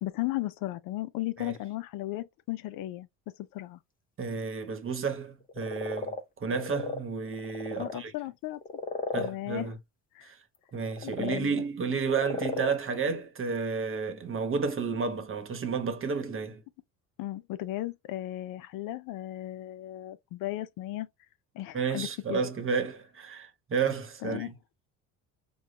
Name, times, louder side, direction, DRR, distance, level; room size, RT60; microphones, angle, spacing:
voice 1, 0.0-3.1 3.4-3.8 7.8-8.6 9.1-9.7 10.1-10.3 11.0-11.6 17.2-21.1 21.5-22.4 24.2-24.5, left 16 dB, 60° left, 0.5 m, -35 dB
voice 2, 4.2-8.1 9.1-9.8 10.2-10.4 10.7-16.6 21.7-24.5, right 5 dB, 35° right, 1.1 m, -31 dB
sound 1, 5.4-7.0 7.3-8.0 8.5-9.3 10.7-11.4 12.0-12.8, left 3 dB, 20° left, 0.8 m, -35 dB
4.9 x 2.3 x 2.2 m
supercardioid pair, 80°, 38 cm